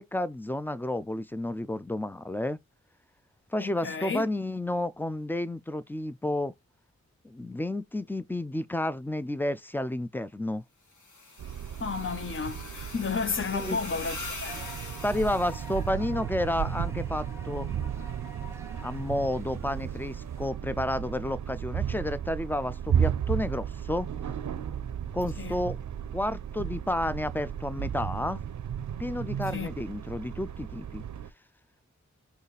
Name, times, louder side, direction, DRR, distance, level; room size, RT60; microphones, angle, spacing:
voice 1, 0.0-2.6 3.5-6.5 7.2-10.6 13.5-13.8 15.0-17.7 18.8-24.1 25.1-25.8 26.1-28.4 29.0-31.0, left 1 dB, 5° left, 0.3 m, -31 dB
voice 2, 3.6-4.3 11.8-14.7 25.4-25.6 29.5-29.8, left 5 dB, 45° left, 0.6 m, -32 dB
sound 1, 10.9-15.8, left 3 dB, 90° left, 1.4 m, -42 dB
sound 2, 11.4-31.3, right 9 dB, 75° right, 0.5 m, -34 dB
sound 3, 14.5-20.5, right 1 dB, 10° right, 1.0 m, -48 dB
3.9 x 3.0 x 4.1 m
wide cardioid pair, 85°, 29 cm